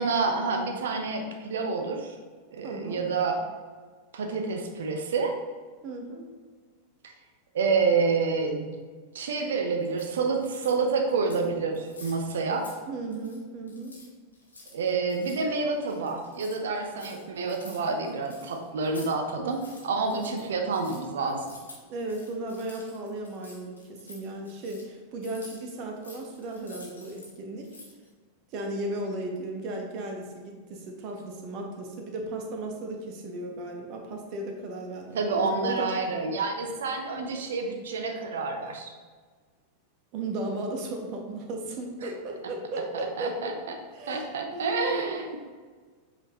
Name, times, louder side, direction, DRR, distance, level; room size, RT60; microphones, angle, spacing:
voice 1, 0.0-2.1 2.5-3.4 4.1-5.3 7.5-8.7 9.1-12.7 14.7-21.4 35.1-38.9 42.0-42.1 43.2-43.5 44.1-45.4, right 4 dB, 60° right, 4 dB, 0.8 m, -28 dB
voice 2, 2.6-3.0 5.8-6.3 12.9-13.9 20.1-20.4 21.9-27.7 28.5-36.0 40.1-43.5 43.9-45.4, right 2 dB, 40° right, 2 dB, 1.1 m, -35 dB
sound 1, 9.8-10.8 11.1-11.5 11.7-12.8 13.0-13.4 13.7-19.1 19.4-27.3 27.6-28.1, left 2 dB, 75° left, 1.3 m, -50 dB
7.7 x 4.4 x 3.0 m, 1.5 s
figure-of-eight pair, 90°, 0 cm